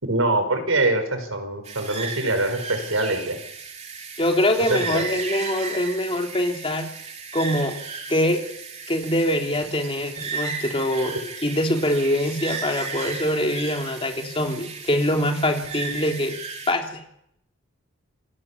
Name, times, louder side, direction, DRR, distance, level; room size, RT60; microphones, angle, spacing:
voice 1, 0.0-3.4 4.7-5.0, right 2 dB, 75° right, 7 dB, 5.3 m, -24 dB
sound 1, 1.6-16.7, right 4 dB, 30° right, 3.4 m, -35 dB
voice 2, 4.2-6.9 7.3-7.8 8.1-8.4 8.9-16.4 16.7-17.0, left 1 dB, 25° left, 3 dB, 3.2 m, -24 dB
28.0 x 17.5 x 8.5 m, 0.76 s
head